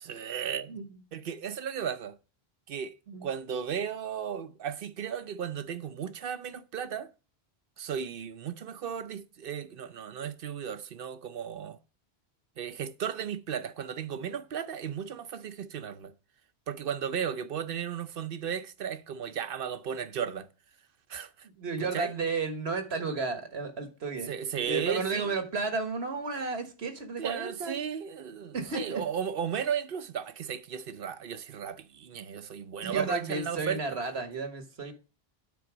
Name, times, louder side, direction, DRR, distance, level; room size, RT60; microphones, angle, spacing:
voice 1, 0.1-0.7 1.1-2.2 2.7-2.9 3.2-7.1 7.8-11.8 12.6-16.1 16.7-20.5 21.1-21.5 21.8-22.1 24.3-25.3 27.2-33.8, right 8 dB, 65° right, 0.8 m, -35 dB
voice 2, 21.6-24.3 24.7-27.8 28.5-29.0 32.8-34.9, right 4 dB, 85° right, 1.7 m, -32 dB
9.3 x 4.2 x 6.0 m
omnidirectional pair, 1.0 m